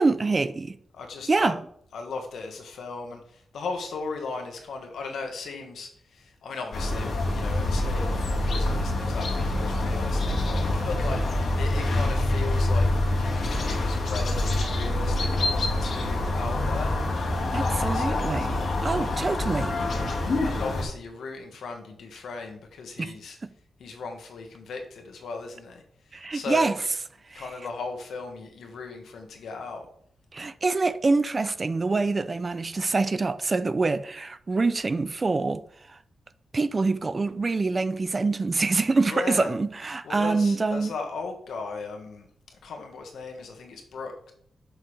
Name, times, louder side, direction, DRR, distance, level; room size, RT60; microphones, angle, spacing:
voice 1, 0.0-0.8 1.3-1.6 17.5-19.8 23.0-23.1 23.4-23.5 26.1-26.8 27.3-27.5 30.3-35.6 35.9-36.0 36.5-40.9, right 3 dB, 30° right, 0.3 m, -25 dB
voice 2, 0.9-1.5 1.9-12.9 13.7-16.9 17.4-18.3 19.0-19.1 20.4-23.4 23.8-25.8 26.3-26.7 27.3-29.9 39.1-39.5 40.0-42.3 42.6-44.3, left 4 dB, 90° left, 1.3 m, -37 dB
sound 1, 6.7-20.8, left 2 dB, 60° left, 1.5 m, -26 dB
6.5 x 5.7 x 3.2 m
wide cardioid pair, 155°, 0 cm